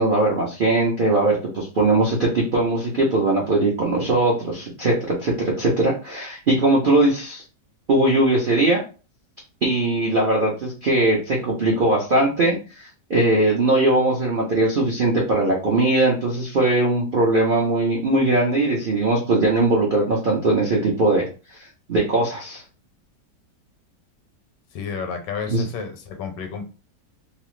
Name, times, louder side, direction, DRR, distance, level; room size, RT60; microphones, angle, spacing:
voice 1, 0.0-7.4 7.9-8.8 9.6-21.3 21.9-22.6 25.5-25.7, right 2 dB, 85° right, -3 dB, 0.4 m, -20 dB
voice 2, 24.7-26.6, left 6 dB, 80° left, 6 dB, 1.2 m, -31 dB
2.9 x 2.0 x 3.0 m, 0.34 s
omnidirectional pair, 1.9 m